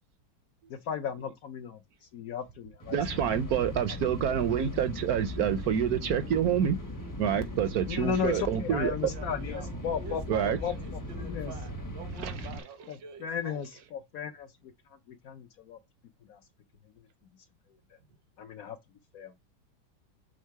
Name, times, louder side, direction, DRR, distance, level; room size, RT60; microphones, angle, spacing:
voice 1, 0.7-1.8 2.1-3.0 7.9-10.2 10.6-10.7 11.1-11.5 12.9-14.5 15.1-15.8 16.3-16.4 18.4-18.8 19.1-19.4, left 7 dB, 65° left, 1.0 m, -35 dB
sound 1, 2.8-12.6, left 1 dB, 20° left, 0.5 m, -38 dB
voice 2, 2.9-6.8 7.2-9.1 10.3-10.6 12.2-12.3, right 9 dB, 65° right, 1.0 m, -27 dB
voice 3, 9.1-13.6, right 6 dB, 80° right, 1.9 m, -46 dB
6.5 x 3.7 x 4.6 m
omnidirectional pair, 2.0 m